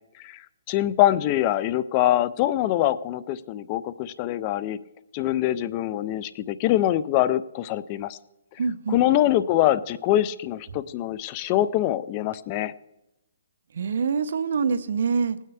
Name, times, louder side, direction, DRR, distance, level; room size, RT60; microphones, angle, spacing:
voice 1, 0.2-4.8 5.1-8.2 8.9-12.7, left 13 dB, 20° left, 16 dB, 0.3 m, -24 dB
voice 2, 8.6-9.0 13.7-15.4, right 5 dB, 55° right, 12 dB, 0.6 m, -25 dB
18.5 x 9.2 x 3.4 m, 0.94 s
hypercardioid pair, 170°, 0 cm